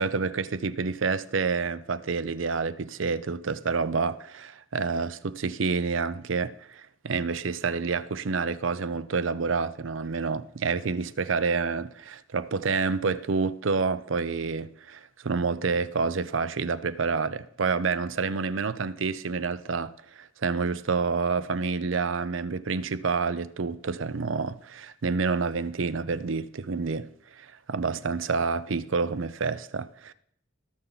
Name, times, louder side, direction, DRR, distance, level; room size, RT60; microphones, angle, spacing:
voice 1, 0.0-30.1, right 4 dB, 85° right, 0.6 m, -28 dB
18.0 x 6.9 x 4.0 m
head